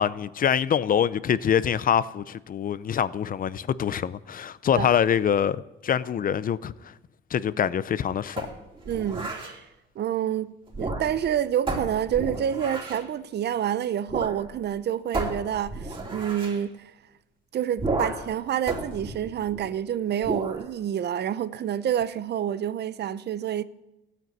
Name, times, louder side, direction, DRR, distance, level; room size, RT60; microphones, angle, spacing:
voice 1, 0.0-6.9 7.3-8.5, left 8 dB, 45° left, 0.6 m, -25 dB
sound 1, 8.4-9.6 10.7-11.3 11.7-13.1 14.1-14.4 14.7-14.8 15.1-16.6 17.8-18.3 18.7-19.8 20.2-20.6, right 2 dB, 25° right, 3.3 m, -32 dB
voice 2, 8.9-9.3 10.0-10.5 10.8-16.9 17.5-23.6, right 10 dB, 55° right, 0.7 m, -28 dB
15.5 x 9.6 x 9.4 m
cardioid pair, 135°, 20 cm